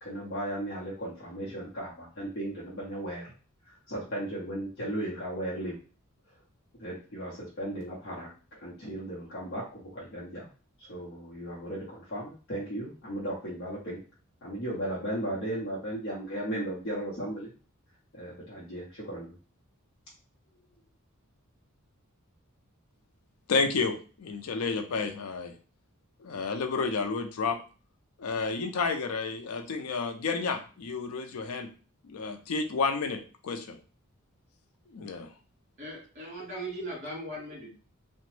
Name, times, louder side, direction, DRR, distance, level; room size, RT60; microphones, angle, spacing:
voice 1, 0.0-3.3 3.7-5.8 6.8-10.5 10.8-14.0 14.4-17.5 18.1-19.4, right 1 dB, 55° left, -6 dB, 0.7 m, -36 dB
voice 2, 23.5-25.5 26.2-27.6 28.2-31.7 32.0-33.8 34.9-35.3, left 4 dB, 80° left, 6 dB, 0.4 m, -31 dB
voice 3, 35.8-37.8, right 1 dB, 35° right, -3 dB, 1.6 m, -39 dB
2.9 x 2.1 x 3.1 m, 0.37 s
head